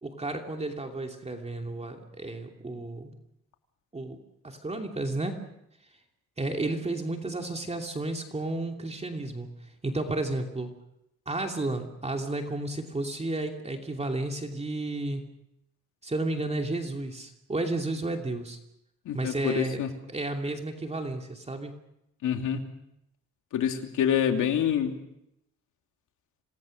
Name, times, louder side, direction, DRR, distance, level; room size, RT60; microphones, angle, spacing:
voice 1, 0.0-3.1 3.9-4.2 4.4-5.4 6.4-10.7 11.3-15.2 16.0-18.6 19.1-19.8 20.1-21.7, right 2 dB, 20° right, 3 dB, 2.7 m, -32 dB
voice 2, 19.1-19.9 22.2-22.6 23.5-24.9, left 9 dB, 75° left, 4 dB, 2.9 m, -26 dB
27.0 x 18.5 x 6.6 m, 0.83 s
cardioid pair, 90°, 30 cm